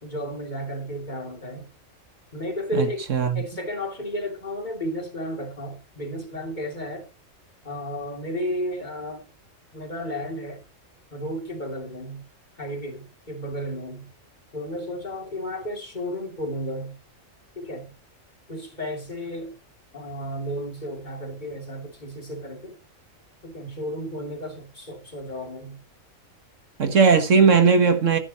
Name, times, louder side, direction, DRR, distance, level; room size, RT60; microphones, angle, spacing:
voice 1, 0.0-1.7 2.3-7.1 7.6-9.3 9.7-10.6 11.1-12.2 12.6-14.1 14.5-17.0 17.5-17.9 18.5-19.6 19.9-22.8 23.4-25.8, equal, 35° left, 2.8 m, -33 dB
voice 2, 2.7-3.4 26.8-28.2, right 5 dB, 70° right, 1.7 m, -18 dB
14.5 x 9.8 x 2.9 m
omnidirectional pair, 1.4 m